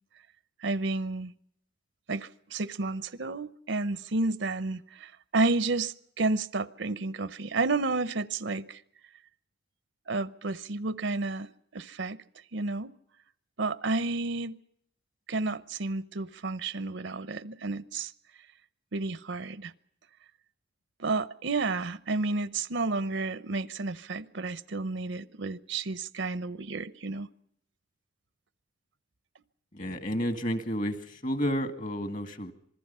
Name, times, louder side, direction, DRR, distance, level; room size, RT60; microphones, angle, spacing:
voice 1, 0.6-1.3 2.1-8.8 10.1-12.2 12.5-12.9 13.6-14.6 15.3-18.1 18.9-19.7 21.0-27.3, right 3 dB, 70° right, 0.8 m, -31 dB
voice 2, 29.7-32.5, equal, 45° left, 1.8 m, -31 dB
26.5 x 21.0 x 5.6 m
head